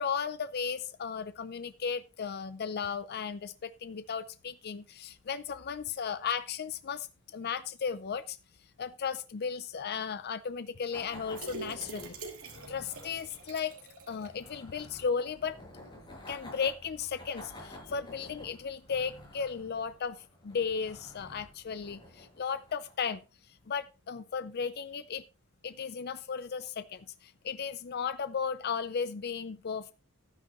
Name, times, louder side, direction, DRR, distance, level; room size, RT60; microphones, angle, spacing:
voice 1, 0.0-7.1 7.3-8.4 8.8-12.2 12.7-13.7 14.1-15.6 16.3-23.2 23.7-25.2 25.6-29.9, left 6 dB, 45° left, 13 dB, 0.5 m, -35 dB
sound 1, 10.9-23.1, left 1 dB, 20° left, 6.3 m, -51 dB
sound 2, 11.3-14.4 14.8-14.9 15.2-15.3, right 3 dB, 75° right, 2.6 m, -45 dB
12.0 x 9.9 x 3.0 m, 0.30 s
head